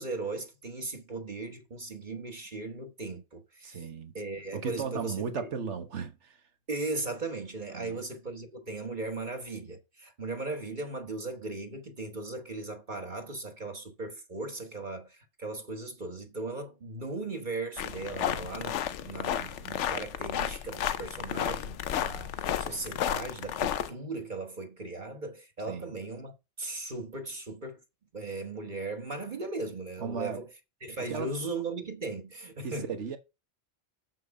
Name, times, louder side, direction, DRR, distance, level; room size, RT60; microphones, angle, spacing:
voice 1, 0.0-3.9 4.1-5.5 6.7-27.8 28.1-30.5 30.8-32.9, right 3 dB, 45° right, 1.4 m, -38 dB
voice 2, 3.6-4.1 4.5-6.4 7.7-8.0 25.7-25.9 30.0-30.4 31.1-31.3 32.6-33.2, right 6 dB, 80° right, 1.5 m, -36 dB
sound 1, 17.8-23.9, left 10 dB, 85° left, 1.0 m, -32 dB
7.0 x 6.1 x 4.7 m
omnidirectional pair, 1.2 m